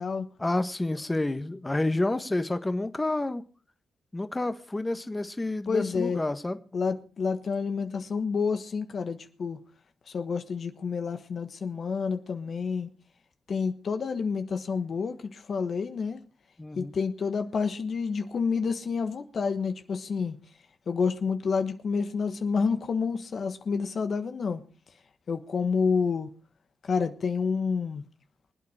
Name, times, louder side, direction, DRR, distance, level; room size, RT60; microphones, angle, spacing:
voice 1, 0.4-3.4 4.1-6.6 16.6-16.9, left 2 dB, 20° left, 1.4 m, -29 dB
voice 2, 5.7-6.2 6.7-9.6 10.1-12.9 13.5-16.2 16.8-20.3 20.9-24.6 25.3-26.3 26.8-28.0, left 5 dB, 65° left, 1.3 m, -29 dB
24.0 x 8.7 x 4.9 m
supercardioid pair, 55°, 0 cm